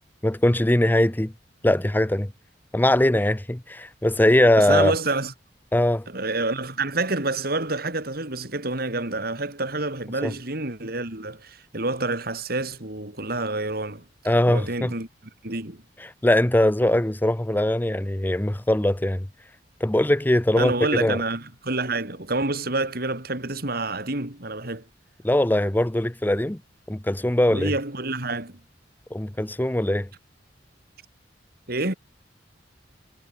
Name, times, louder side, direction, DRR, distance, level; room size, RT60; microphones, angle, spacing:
voice 1, 0.2-1.3 1.6-2.3 2.7-4.9 5.7-6.1 10.2-10.3 14.2-14.9 16.0-19.3 19.8-20.7 21.0-21.2 25.2-26.6 26.9-27.7 29.1-30.1, left 1 dB, 10° left, 0.7 m, -21 dB
voice 2, 4.6-5.3 6.1-14.0 14.5-15.1 15.4-15.8 20.6-24.8 27.5-28.6 31.7-31.9, right 2 dB, 60° right, 4.3 m, -28 dB
head